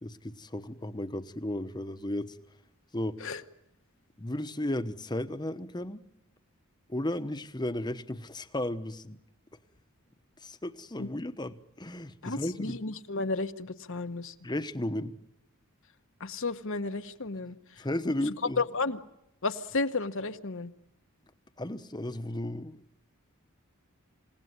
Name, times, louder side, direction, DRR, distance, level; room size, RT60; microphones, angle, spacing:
voice 1, 0.0-2.4 2.9-3.2 4.2-6.0 6.9-9.2 10.4-12.8 14.4-15.2 17.8-18.6 21.6-22.8, left 1 dB, 20° left, 10 dB, 1.1 m, -34 dB
voice 2, 12.2-14.3 16.2-17.6 18.3-19.0 19.4-20.7, left 3 dB, 60° left, 8 dB, 1.1 m, -32 dB
28.0 x 17.5 x 9.7 m, 0.86 s
head